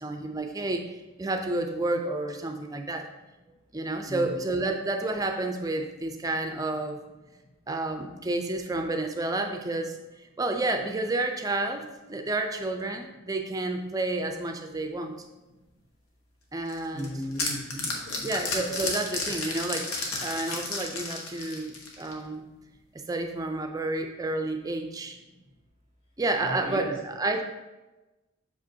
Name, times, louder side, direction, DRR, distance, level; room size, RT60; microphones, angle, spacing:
voice 1, 0.0-3.1 3.7-7.0 7.7-10.0 10.4-15.1 16.5-17.1 18.2-22.4 22.9-25.2 26.2-27.4, right 2 dB, 15° right, 5 dB, 0.4 m, -30 dB
voice 2, 4.1-4.4 16.9-18.3 26.4-26.9, equal, 65° left, -3 dB, 1.6 m, -36 dB
sound 1, 16.7-22.2, left 3 dB, 90° left, 1.1 m, -32 dB
6.8 x 5.1 x 2.7 m, 1.1 s
head